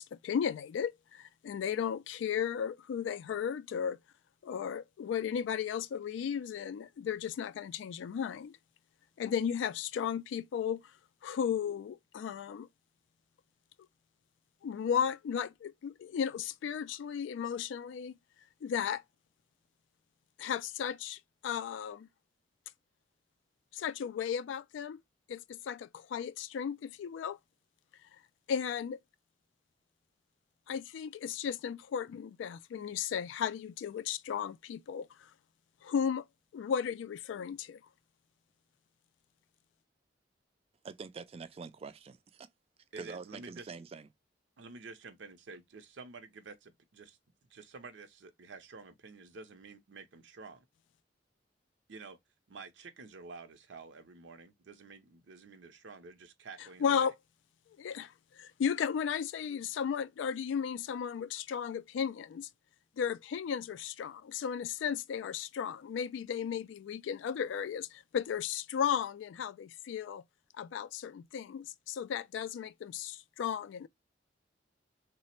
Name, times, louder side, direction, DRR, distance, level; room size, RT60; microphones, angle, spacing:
voice 1, 0.0-4.0 4.4-8.6 9.2-10.8 11.2-12.7 14.6-18.1 18.6-19.0 20.4-22.1 23.7-25.0 25.3-27.4 28.5-29.0 30.7-35.3 35.8-36.3 36.5-37.8 56.8-57.1 57.8-62.5 63.0-70.2 70.6-73.9, left 7 dB, 85° left, 0.3 m, -35 dB
voice 2, 40.8-42.5 43.0-44.1, right 5 dB, 35° right, 0.3 m, -45 dB
voice 3, 42.9-43.7 44.6-47.2 47.5-50.6 51.9-52.2 52.5-57.1, right 4 dB, 80° right, 0.6 m, -50 dB
3.2 x 2.0 x 4.2 m
head